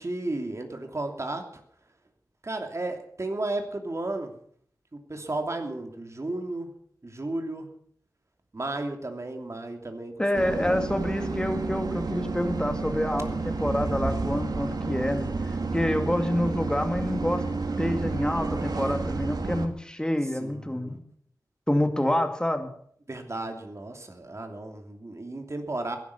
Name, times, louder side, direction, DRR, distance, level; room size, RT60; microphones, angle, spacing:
voice 1, 0.0-1.6 2.4-4.3 4.9-6.7 7.0-7.7 8.5-10.8 20.3-21.0 23.1-26.0, right 2 dB, 45° right, 4 dB, 2.9 m, -34 dB
voice 2, 10.2-17.4 17.8-21.0 21.7-22.7, left 1 dB, 10° left, 6 dB, 2.3 m, -27 dB
sound 1, 10.3-19.7, right 3 dB, 75° right, 1.7 m, -30 dB
15.0 x 11.0 x 7.2 m, 0.62 s
wide cardioid pair, 65°, 7 cm